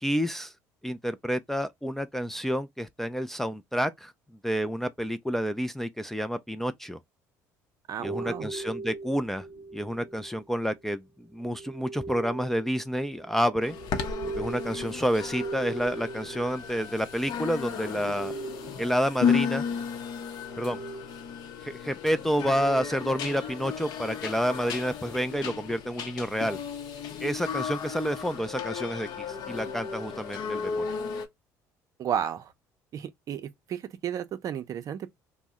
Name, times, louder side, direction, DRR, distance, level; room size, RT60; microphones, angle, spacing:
voice 1, 0.0-0.5 0.8-4.1 4.4-7.0 8.0-9.5 9.7-13.8 14.3-18.4 18.8-19.6 20.6-20.8 21.6-26.6 27.2-30.9, equal, 5° left, 0.3 m, -29 dB
voice 2, 7.9-8.5 32.0-32.5 32.9-35.1, right 9 dB, 50° right, 0.5 m, -33 dB
sound 1, 8.0-10.4 11.4-17.4 17.7-19.2 20.1-21.3, right 3 dB, 25° right, 0.8 m, -40 dB
sound 2, 13.6-31.3, left 6 dB, 60° left, 0.6 m, -34 dB
2.7 x 2.0 x 3.4 m
supercardioid pair, 85°, 8 cm